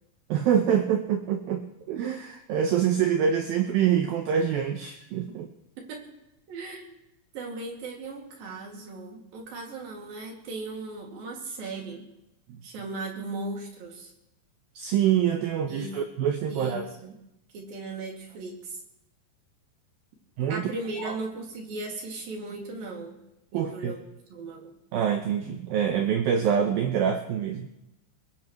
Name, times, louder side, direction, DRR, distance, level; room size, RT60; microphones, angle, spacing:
voice 1, 0.3-5.5 14.8-16.9 20.4-20.7 21.0-21.1 23.5-23.9 24.9-27.7, right 8 dB, 80° right, 5 dB, 2.1 m, -25 dB
voice 2, 6.5-7.0 7.3-12.1 12.6-14.1 15.7-16.0 16.5-17.1 17.5-18.8 20.5-23.2 23.5-24.0 24.3-24.7, right 3 dB, 55° right, 0 dB, 3.8 m, -37 dB
22.0 x 19.5 x 3.1 m, 0.89 s
omnidirectional pair, 5.2 m